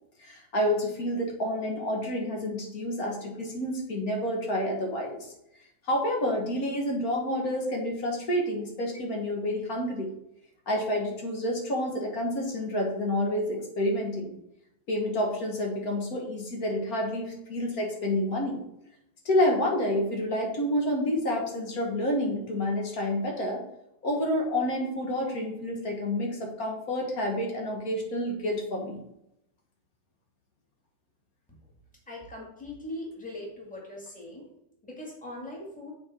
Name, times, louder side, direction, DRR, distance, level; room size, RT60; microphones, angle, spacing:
voice 1, 0.2-5.2 5.9-10.1 10.7-14.3 14.9-18.6 19.2-23.6 24.0-29.0, left 1 dB, 50° left, 0 dB, 1.7 m, -29 dB
voice 2, 32.1-34.5 34.8-35.9, left 1 dB, 5° left, -3 dB, 1.8 m, -40 dB
7.6 x 4.4 x 4.3 m, 0.80 s
omnidirectional pair, 2.1 m